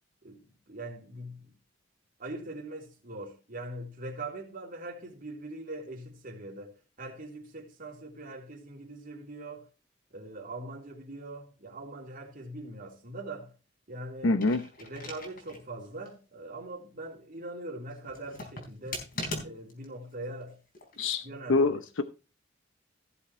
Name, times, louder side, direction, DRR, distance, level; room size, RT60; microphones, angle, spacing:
voice 1, 0.2-1.5 2.2-9.7 10.1-13.5 13.9-14.4 14.8-19.1 19.4-20.6 21.2-21.7, right 2 dB, 45° right, 3.3 m, -42 dB
voice 2, 14.2-14.6 21.0-21.2 21.5-22.0, left 3 dB, 90° left, 0.8 m, -25 dB
sound 1, 14.3-15.7 16.1-16.2 18.1-19.9 20.7-21.2, left 2 dB, 50° left, 4.0 m, -40 dB
17.0 x 7.2 x 3.2 m
head